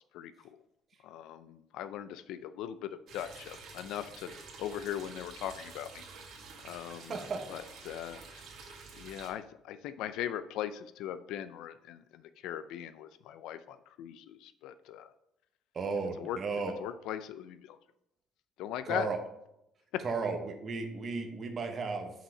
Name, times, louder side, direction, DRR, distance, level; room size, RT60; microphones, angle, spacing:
voice 1, 0.1-0.6 1.0-4.3 4.6-6.0 6.6-7.2 7.5-8.4 8.9-15.1 16.2-16.4 16.8-17.8 18.6-19.1 19.9-20.0, left 10 dB, 80° left, 12 dB, 0.4 m, -39 dB
Tiny Waterfall, 3.1-9.3, right 4 dB, 60° right, 1.8 m, -49 dB
voice 2, 7.1-7.5 15.7-16.7 18.8-19.2 20.0-22.1, right 4 dB, 35° right, 4 dB, 1.0 m, -34 dB
5.9 x 5.5 x 6.4 m, 0.82 s
cardioid pair, 140°, 0 cm